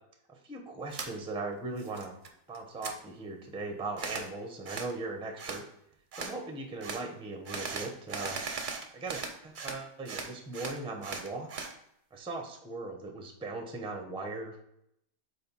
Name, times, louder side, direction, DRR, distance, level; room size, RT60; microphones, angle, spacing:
voice 1, 0.3-2.2 2.5-5.7 6.1-8.4 8.9-11.5 12.1-14.6, right 3 dB, 5° right, 3 dB, 0.4 m, -39 dB
sound 1, 0.9-1.1 1.5-2.3 2.5-2.9 4.0-4.3 4.6-4.9 5.4-5.6 6.1-6.3 6.8-7.0 7.4-9.8 10.0-11.7, right 4 dB, 50° right, 0.6 m, -38 dB
5.1 x 4.2 x 5.3 m, 0.76 s
omnidirectional pair, 1.7 m